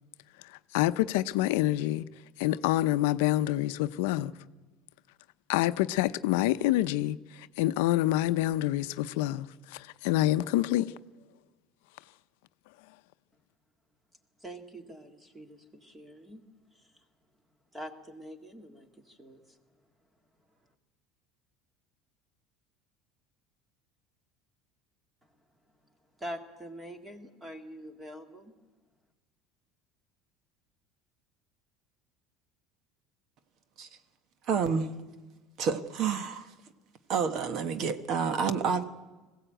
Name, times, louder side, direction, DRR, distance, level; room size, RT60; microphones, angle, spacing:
voice 1, 0.4-2.0 2.4-4.3 5.5-10.9, left 15 dB, 80° left, 0.6 m, -27 dB
voice 2, 14.4-16.4 16.7-16.8 17.7-19.4 26.2-28.5, equal, 10° right, 2.0 m, -44 dB
voice 3, 34.5-34.9 35.6-36.5 37.1-38.8, right 6 dB, 45° right, 1.2 m, -29 dB
21.0 x 16.0 x 9.1 m
cardioid pair, 150°, 0 cm